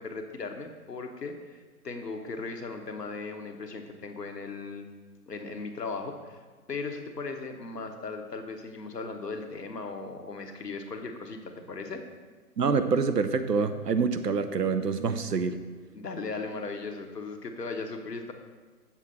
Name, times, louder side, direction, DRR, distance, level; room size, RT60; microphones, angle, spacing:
voice 1, 0.0-1.6 1.8-4.9 5.3-6.4 6.7-12.0 15.9-18.3, left 4 dB, 80° left, 5 dB, 1.1 m, -37 dB
voice 2, 12.6-15.7, right 5 dB, 85° right, 10 dB, 0.7 m, -26 dB
7.4 x 7.2 x 4.0 m, 1.4 s
figure-of-eight pair, 120°, 47 cm